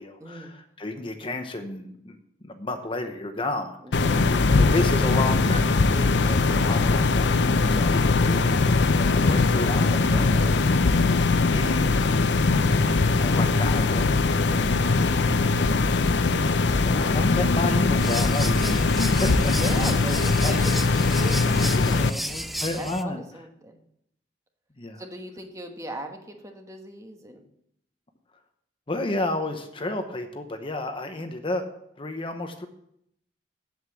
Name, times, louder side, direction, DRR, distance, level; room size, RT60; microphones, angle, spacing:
voice 1, 0.0-4.2 4.6-11.2 11.5-11.9 13.1-15.1 16.1-19.5 20.4-21.0 21.7-23.2 24.8-25.0 28.9-31.6 32.0-32.7, left 2 dB, 30° left, 6 dB, 0.9 m, -32 dB
voice 2, 3.8-4.3 14.9-15.7 19.4-22.2 22.8-23.8 25.0-27.4, right 1 dB, 20° right, 4 dB, 1.2 m, -39 dB
sound 1, 3.9-22.1, left 3 dB, 75° left, 0.6 m, -21 dB
sound 2, 18.0-23.0, equal, ahead, 0.4 m, -33 dB
8.1 x 8.1 x 7.1 m, 0.75 s
head